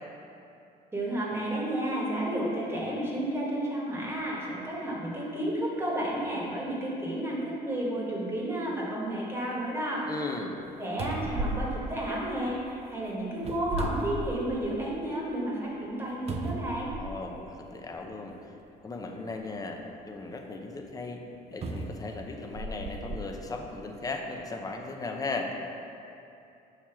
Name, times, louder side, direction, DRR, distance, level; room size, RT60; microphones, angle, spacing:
voice 1, 0.9-10.0 10.8-16.9, right 1 dB, 15° right, -5 dB, 1.4 m, -31 dB
voice 2, 10.1-10.6 17.0-18.5 18.8-21.2 21.5-25.5, left 3 dB, 20° left, 2 dB, 0.6 m, -37 dB
sound 1, 10.6-10.7 11.0-12.7 13.4-14.8 15.2-15.3 16.3-17.4 18.3-18.4 21.6-23.3 24.0-24.1, right 2 dB, 40° right, 0.5 m, -35 dB
6.5 x 3.0 x 5.8 m, 2.7 s
cardioid pair, 110°, 17 cm